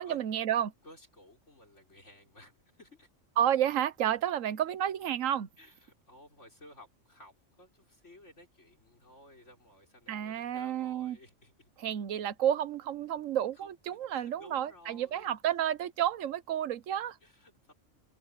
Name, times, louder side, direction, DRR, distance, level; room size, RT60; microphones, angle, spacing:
voice 1, 0.0-0.7 3.4-5.5 10.1-11.2 11.8-17.2, right 10 dB, 75° right, 1.2 m, -31 dB
voice 2, 0.8-3.1 5.6-11.7 13.6-15.3 17.2-17.7, left 1 dB, 60° left, 6.2 m, -56 dB
omnidirectional pair, 1.4 m